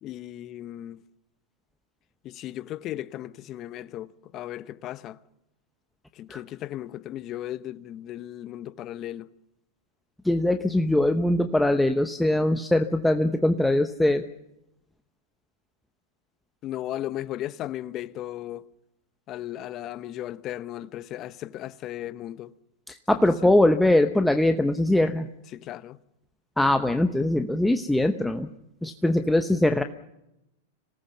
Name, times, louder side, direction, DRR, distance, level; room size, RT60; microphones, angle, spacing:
voice 1, 0.0-1.0 2.2-5.2 6.1-9.3 16.6-18.7 19.3-22.5 23.1-23.5 25.5-26.0, left 13 dB, 40° left, 0.9 m, -36 dB
voice 2, 10.2-14.2 22.9-25.3 26.6-28.5 28.8-29.8, left 1 dB, 5° left, 0.9 m, -22 dB
26.0 x 18.5 x 7.1 m
hypercardioid pair, 105°, 0 cm